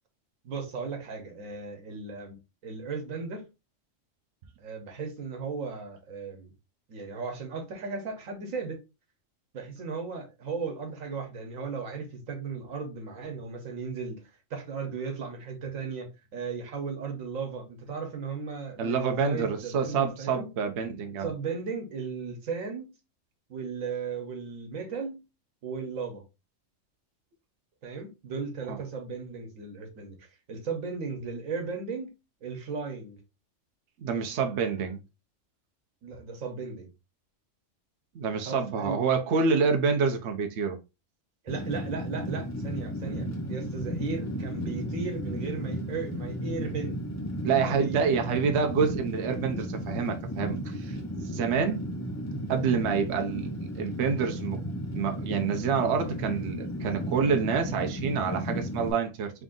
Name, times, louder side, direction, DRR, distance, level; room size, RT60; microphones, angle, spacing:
voice 1, 0.4-2.4 2.6-3.5 4.6-6.5 6.9-8.8 9.5-14.2 14.5-20.5 21.2-22.9 23.5-25.2 25.6-26.2 27.8-32.1 32.4-33.2 36.0-36.9 38.4-39.0 41.4-47.0 47.6-48.0, right 5 dB, 85° right, 1.4 m, -36 dB
voice 2, 18.8-21.3 28.7-28.8 34.0-35.0 38.1-40.8 47.4-51.0 51.3-51.8 52.5-53.5 53.8-54.6 54.9-59.3, right 5 dB, 65° right, 0.9 m, -27 dB
Fire, 41.5-58.9, equal, 20° left, 0.5 m, -34 dB
3.4 x 2.5 x 3.6 m
omnidirectional pair, 1.4 m